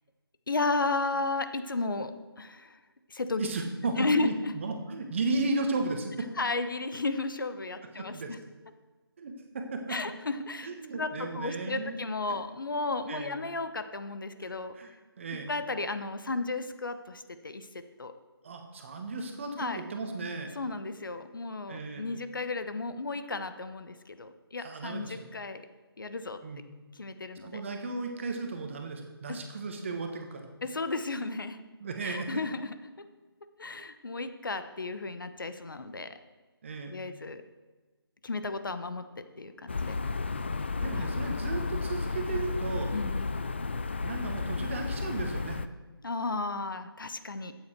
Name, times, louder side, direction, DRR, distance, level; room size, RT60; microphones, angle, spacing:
voice 1, 0.5-2.8 3.1-3.5 4.0-4.5 6.4-8.4 9.9-10.7 11.0-14.7 15.5-17.7 18.0-18.1 19.6-19.8 20.5-25.6 26.0-26.4 26.9-27.6 29.3-29.4 30.6-31.6 32.0-32.8 33.6-36.2 36.9-37.4 38.2-39.9 40.9-41.1 42.9-43.3 46.0-47.5, left 3 dB, 55° left, 10 dB, 0.9 m, -33 dB
voice 2, 3.4-6.3 8.0-8.3 9.2-9.9 10.6-12.0 13.1-13.3 14.7-15.5 18.4-20.5 21.7-22.1 24.6-25.2 26.4-26.8 27.4-30.5 31.8-32.4 36.6-37.0 40.8-42.9 44.0-45.6, right 3 dB, 30° right, 4 dB, 1.3 m, -35 dB
sound 1, 39.7-45.7, left 4 dB, 25° left, 0.3 m, -32 dB
12.5 x 9.0 x 4.5 m, 1.3 s
figure-of-eight pair, 155°, 13 cm